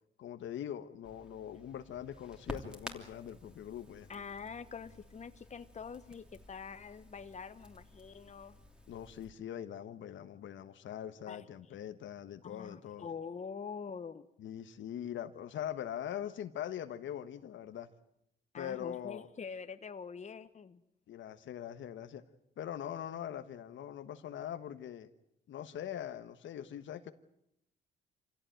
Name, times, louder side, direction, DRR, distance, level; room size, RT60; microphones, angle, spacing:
voice 1, 0.2-4.1 8.9-13.1 14.4-17.9 18.6-19.3 21.1-22.2 22.6-25.1 25.5-27.1, left 10 dB, 75° left, 10 dB, 1.3 m, -42 dB
Crackle, 1.0-9.3, equal, 5° right, 2.9 m, -51 dB
voice 2, 4.1-8.6 11.3-11.4 12.4-14.3 18.5-20.8, left 6 dB, 35° left, 11 dB, 1.2 m, -45 dB
27.0 x 16.0 x 9.2 m, 0.80 s
cardioid pair, 100°, 20 cm